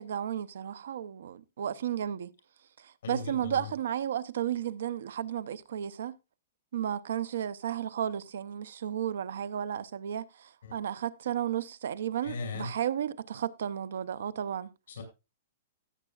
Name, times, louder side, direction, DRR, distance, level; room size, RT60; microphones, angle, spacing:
voice 1, 0.0-2.3 2.8-6.2 6.7-14.7, right 10 dB, 70° right, 0.6 m, -33 dB
voice 2, 3.0-3.7 10.6-10.8 12.2-12.7 14.9-15.0, left 4 dB, 60° left, 5.2 m, -38 dB
17.0 x 8.1 x 2.4 m
hypercardioid pair, 175°, 0 cm